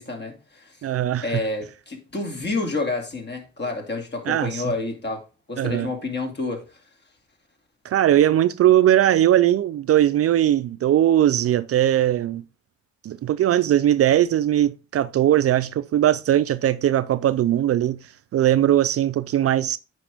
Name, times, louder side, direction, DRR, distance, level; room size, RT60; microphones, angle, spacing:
voice 1, 0.0-0.8 1.2-6.8, left 3 dB, 35° left, 2.4 m, -29 dB
voice 2, 0.8-1.4 4.3-4.6 5.6-5.9 7.8-12.4 13.0-18.0 18.3-19.8, right 12 dB, 50° right, 0.4 m, -19 dB
8.8 x 5.4 x 3.5 m
cardioid pair, 90°, 30 cm